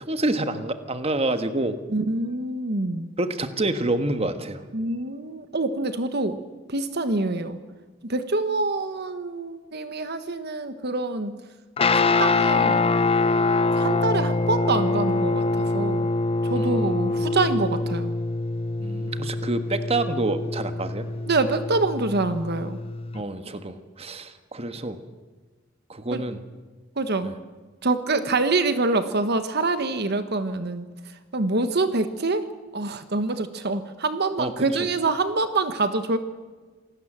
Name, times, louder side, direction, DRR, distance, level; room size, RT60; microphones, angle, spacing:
voice 1, 0.1-1.8 3.2-4.6 16.6-17.0 18.8-21.1 23.1-25.0 25.9-26.4 27.2-27.3 34.4-34.5, right 2 dB, 30° right, 9 dB, 1.5 m, -27 dB
voice 2, 1.9-3.1 4.7-6.4 6.7-7.6 8.1-11.4 11.9-12.8 13.7-16.1 16.4-18.1 21.3-22.8 26.1-26.2 27.0-27.3 27.8-30.9 31.3-32.5 32.7-36.2, right 3 dB, 55° right, 10 dB, 1.3 m, -25 dB
Guitar, 11.8-23.2, left 3 dB, 30° left, 0.7 m, -24 dB
27.5 x 18.5 x 7.5 m, 1.4 s
head